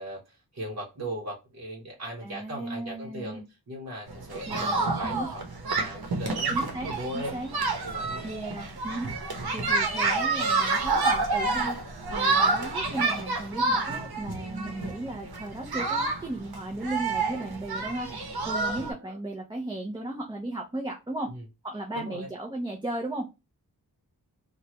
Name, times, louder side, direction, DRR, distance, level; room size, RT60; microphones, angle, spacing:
voice 1, 0.0-3.4 3.7-5.4 5.7-7.4 7.8-8.2 19.0-19.2 21.3-21.4 21.9-22.3, right 1 dB, 45° right, 1.0 m, -38 dB
voice 2, 2.2-3.5 4.5-4.8 5.0-5.3 6.5-7.5 8.2-9.1 9.5-21.3 21.6-23.3, right 1 dB, 10° right, 0.6 m, -35 dB
sound 1, 4.1-18.9, right 3 dB, 75° right, 0.8 m, -28 dB
3.1 x 2.3 x 2.9 m
wide cardioid pair, 115°, 38 cm